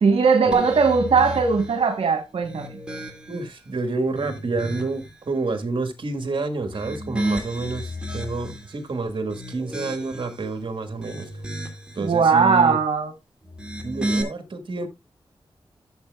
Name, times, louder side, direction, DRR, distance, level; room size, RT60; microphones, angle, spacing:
voice 1, 0.0-2.7 12.0-13.1, right 5 dB, 80° right, 1.2 m, -19 dB
sound 1, 0.5-1.8 2.4-3.5 4.0-5.1 6.6-8.7 9.2-10.4 10.8-12.0 13.4-14.2, right 1 dB, 10° right, 2.2 m, -32 dB
voice 2, 3.3-11.3 11.9-12.8 13.8-14.9, right 3 dB, 55° right, 1.8 m, -29 dB
13.5 x 7.0 x 2.3 m
wide cardioid pair, 95°, 10 cm